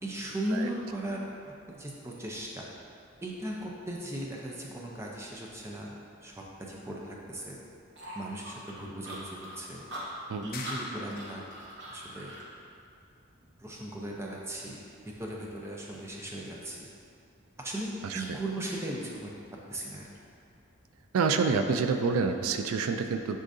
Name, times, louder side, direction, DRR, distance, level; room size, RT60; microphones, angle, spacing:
voice 1, 0.0-2.7 3.2-7.6 8.1-9.9 10.4-11.4 11.9-12.3 13.6-14.8 15.2-16.9 17.6-19.3 19.7-20.0, right 1 dB, 10° right, -2 dB, 0.5 m, -37 dB
sound 1, 8.0-12.5, equal, 55° right, 1.0 m, -42 dB
sound 2, 10.5-11.6, left 4 dB, 40° left, 0.5 m, -42 dB
voice 2, 18.0-18.4 21.1-23.4, right 5 dB, 85° right, 6 dB, 0.4 m, -28 dB
9.8 x 3.8 x 2.7 m, 2.5 s
head